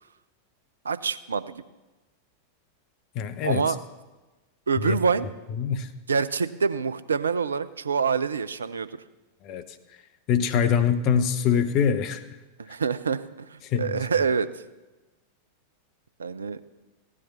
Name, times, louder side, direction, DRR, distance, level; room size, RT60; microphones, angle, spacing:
voice 1, 0.8-1.6 3.4-3.8 4.7-5.3 6.1-9.0 12.6-14.5 16.2-16.6, right 5 dB, 70° right, 15 dB, 0.5 m, -26 dB
voice 2, 3.1-3.7 4.8-5.0 5.5-5.9 9.4-9.6 10.3-12.2 13.6-14.0, left 7 dB, 40° left, 9 dB, 0.9 m, -24 dB
16.0 x 9.9 x 5.6 m, 1.1 s
figure-of-eight pair, 90°, 0 cm